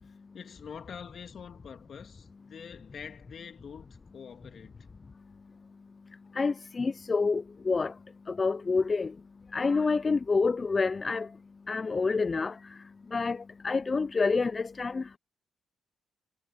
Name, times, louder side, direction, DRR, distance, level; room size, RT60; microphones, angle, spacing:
voice 1, 0.3-4.9, left 7 dB, 55° left, 2.5 m, -45 dB
voice 2, 6.3-8.0 8.3-9.2 9.5-11.4 11.7-15.2, left 4 dB, 30° left, 0.3 m, -28 dB
cardioid pair, 105°, 0 cm